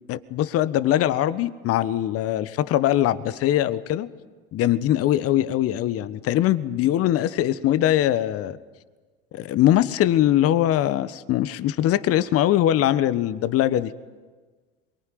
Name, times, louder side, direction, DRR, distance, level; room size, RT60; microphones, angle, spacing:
voice 1, 0.1-4.1 4.5-8.6 9.3-13.9, left 12 dB, 50° left, 15 dB, 1.3 m, -22 dB
27.0 x 23.0 x 9.4 m, 1.4 s
hypercardioid pair, 70°, 29 cm